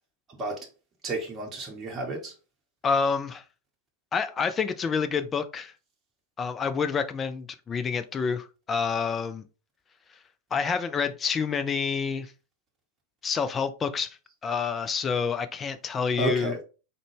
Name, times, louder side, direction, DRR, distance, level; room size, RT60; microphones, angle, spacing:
voice 1, 0.3-0.7 1.0-2.3 16.2-16.6, right 2 dB, 25° right, 0.9 m, -31 dB
voice 2, 2.8-3.4 4.1-5.7 6.4-9.4 10.5-12.3 13.2-16.5, left 5 dB, 20° left, 0.3 m, -28 dB
3.8 x 2.2 x 3.2 m
figure-of-eight pair, 90°, 0 cm